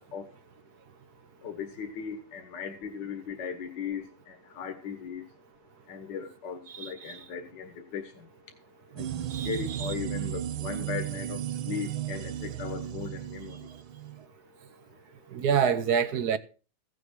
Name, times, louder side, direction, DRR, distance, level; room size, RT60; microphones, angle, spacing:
voice 1, 1.4-5.2 5.9-8.1 9.0-9.1 9.5-11.4 11.7-13.6, left 7 dB, 65° left, 2.1 m, -37 dB
voice 2, 6.7-7.2 9.3-9.9 15.3-16.4, right 7 dB, 60° right, 1.3 m, -27 dB
sound 1, 9.0-14.2, right 12 dB, 85° right, 1.6 m, -35 dB
16.0 x 7.0 x 6.2 m
omnidirectional pair, 2.1 m